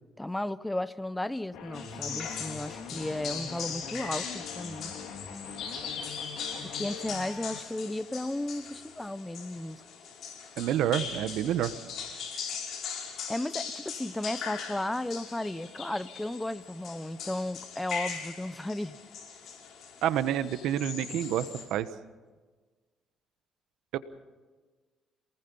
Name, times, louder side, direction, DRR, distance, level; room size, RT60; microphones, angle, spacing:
voice 1, 0.2-4.9 6.6-9.8 13.3-19.0, left 1 dB, 10° left, 16 dB, 0.7 m, -34 dB
sound 1, 1.5-7.6, left 6 dB, 85° left, 3.8 m, -43 dB
sound 2, 1.7-21.6, left 6 dB, 65° left, 5.2 m, -40 dB
voice 2, 10.6-11.7 20.0-21.9 23.9-24.0, right 11 dB, 80° right, 13 dB, 1.1 m, -28 dB
27.5 x 19.5 x 5.4 m, 1.4 s
cardioid pair, 115°, 0 cm